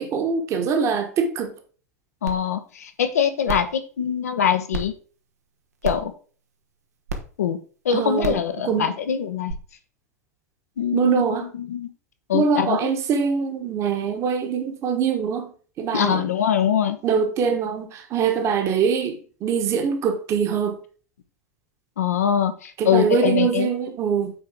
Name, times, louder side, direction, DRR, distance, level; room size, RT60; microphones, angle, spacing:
voice 1, 0.0-1.5 7.9-9.0 10.9-11.5 12.3-15.5 15.8-16.2 17.0-20.8 22.8-24.3, right 6 dB, 35° right, 1.4 m, -23 dB
voice 2, 2.2-4.9 5.8-6.1 7.4-7.6 7.8-9.5 10.8-11.2 11.6-11.9 12.3-12.8 15.9-17.0 22.0-23.7, left 8 dB, 65° left, 1.0 m, -23 dB
sound 1, 2.3-2.4 2.8-2.9 3.4-3.7 4.7-4.8 5.8-6.1 7.1-7.2 8.2-8.4 9.5-9.6, right 3 dB, 70° right, 1.2 m, -29 dB
9.0 x 4.4 x 3.8 m
figure-of-eight pair, 85°, 9 cm